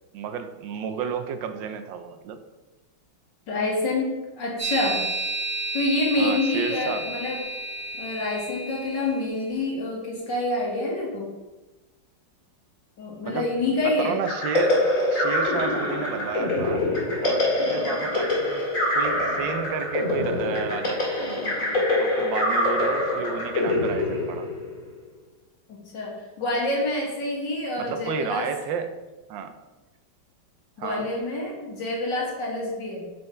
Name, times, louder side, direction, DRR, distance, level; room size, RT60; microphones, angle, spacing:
voice 1, 0.1-2.4 6.2-7.1 13.2-16.9 17.2-18.7 18.9-21.2 21.7-24.5 27.8-28.9 29.3-29.5 30.8-31.1, right 6 dB, 85° right, 8 dB, 1.4 m, -32 dB
voice 2, 3.5-5.0 5.7-7.4 8.0-11.3 13.0-14.2 25.7-28.5 30.8-33.1, left 2 dB, 75° left, -3 dB, 2.5 m, -27 dB
sound 1, 4.6-9.3, right 2 dB, 40° right, 2.6 m, -31 dB
sound 2, 14.2-24.8, left 1 dB, 45° left, 2.6 m, -25 dB
8.9 x 5.4 x 3.3 m, 1.1 s
omnidirectional pair, 2.0 m